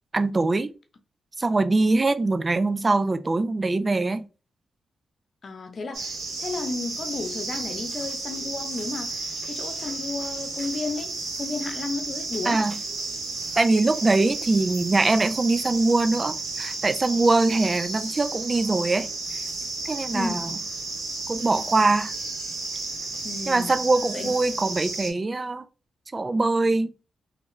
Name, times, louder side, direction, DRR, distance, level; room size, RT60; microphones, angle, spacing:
voice 1, 0.1-0.7 1.4-4.2 12.5-12.8 13.6-19.4 19.8-20.5 21.3-22.1 23.5-25.7 26.1-26.9, right 3 dB, 35° right, 0.3 m, -23 dB
voice 2, 5.4-6.1 6.4-12.6 20.1-20.5 23.2-23.8 24.1-24.3, left 3 dB, 60° left, 0.7 m, -33 dB
sound 1, 5.9-25.1, right 3 dB, 70° right, 1.3 m, -33 dB
3.2 x 2.3 x 3.0 m
supercardioid pair, 55°, 0 cm